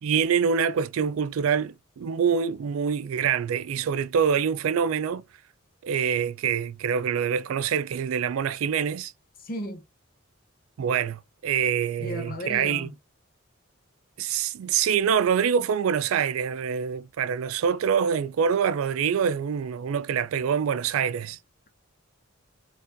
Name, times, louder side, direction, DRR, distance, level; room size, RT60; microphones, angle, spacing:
voice 1, 0.0-5.2 5.8-9.1 10.8-12.9 14.2-21.4, right 7 dB, 80° right, 0.4 m, -25 dB
voice 2, 9.4-9.8 12.0-13.0, equal, 45° left, 0.8 m, -34 dB
4.4 x 2.4 x 2.6 m
head